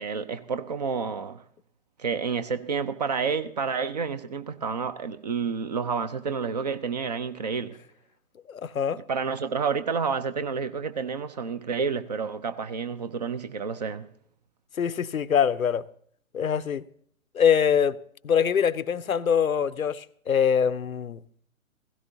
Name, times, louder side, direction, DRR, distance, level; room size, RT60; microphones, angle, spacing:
voice 1, 0.0-1.4 2.0-7.8 9.1-14.1, right 5 dB, 30° right, 0.5 m, -29 dB
voice 2, 8.5-9.0 14.8-15.9 16.3-16.9 17.3-18.0 18.2-21.2, left 7 dB, 80° left, 0.6 m, -24 dB
16.5 x 15.5 x 2.7 m
figure-of-eight pair, 130°, 41 cm